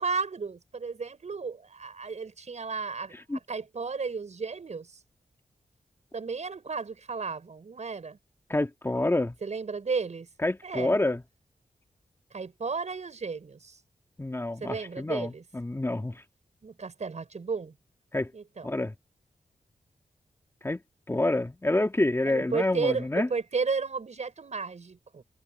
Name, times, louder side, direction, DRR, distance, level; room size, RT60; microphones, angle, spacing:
voice 1, 0.0-4.9 6.1-8.2 9.4-10.3 10.6-11.0 12.3-13.8 14.6-15.4 16.6-17.7 18.3-18.7 22.3-25.2, right 4 dB, 55° right, 5.7 m, -33 dB
voice 2, 8.5-9.3 10.4-11.2 14.2-16.2 18.1-18.3 18.6-18.9 20.6-20.8 21.1-23.3, left 2 dB, 20° left, 1.6 m, -28 dB
wide cardioid pair, 90°, 14 cm